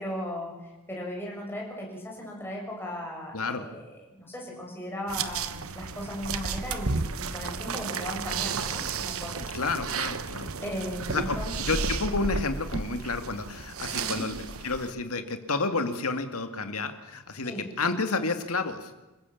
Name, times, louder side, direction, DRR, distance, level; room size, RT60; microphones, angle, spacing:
voice 1, 0.0-3.8 4.2-9.5 10.6-11.5 14.0-14.2 17.4-17.7, left 1 dB, 10° left, -2 dB, 7.1 m, -37 dB
voice 2, 3.3-3.7 9.4-10.6 11.1-18.9, left 3 dB, 70° left, 7 dB, 2.3 m, -30 dB
sound 1, 5.1-14.9, right 5 dB, 65° right, 1.2 m, -33 dB
28.0 x 15.5 x 7.3 m, 1.1 s
head